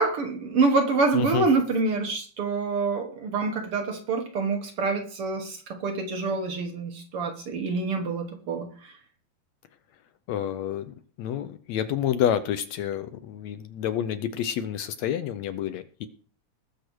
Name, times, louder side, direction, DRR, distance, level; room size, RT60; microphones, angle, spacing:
voice 1, 0.0-8.9, right 3 dB, 55° right, 4 dB, 1.8 m, -26 dB
voice 2, 1.1-1.5 10.3-16.1, left 10 dB, 75° left, 11 dB, 1.8 m, -29 dB
19.5 x 7.0 x 4.6 m, 0.44 s
omnidirectional pair, 3.5 m